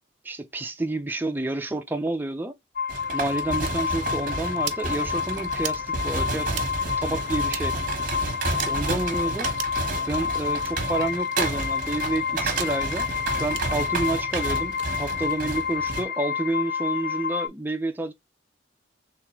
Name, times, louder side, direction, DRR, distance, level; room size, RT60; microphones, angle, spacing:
voice 1, 0.2-2.5 3.1-6.6 7.0-7.8 8.7-9.5 10.1-13.1 13.4-18.1, right 2 dB, 10° right, 0.5 m, -29 dB
Mistery Solved, 2.8-17.5, left 6 dB, 50° left, 0.4 m, -29 dB
sound 1, 2.9-16.0, right 3 dB, 45° right, 1.1 m, -31 dB
sound 2, 3.6-3.7 4.6-4.8 5.6-5.8 6.5-6.7 7.5-7.7 8.5-8.7 9.5-9.8 10.6-10.7 11.6-11.7 12.5-12.7 13.5-13.7 14.7-14.9, right 11 dB, 65° right, 0.6 m, -35 dB
3.7 x 3.3 x 3.0 m
head